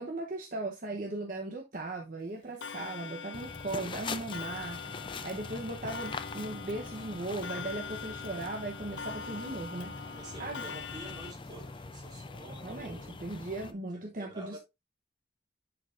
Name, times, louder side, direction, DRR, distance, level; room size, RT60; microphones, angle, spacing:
voice 1, 0.0-5.0 5.2-10.6 12.6-14.6, right 2 dB, 50° right, 1.0 m, -38 dB
Clock, 2.6-11.3, left 6 dB, 80° left, 0.5 m, -43 dB
sound 1, 3.3-13.7, left 3 dB, 30° left, 0.5 m, -43 dB
voice 2, 10.1-13.2 13.9-14.6, right 1 dB, 25° right, 2.5 m, -48 dB
10.0 x 4.6 x 2.6 m
head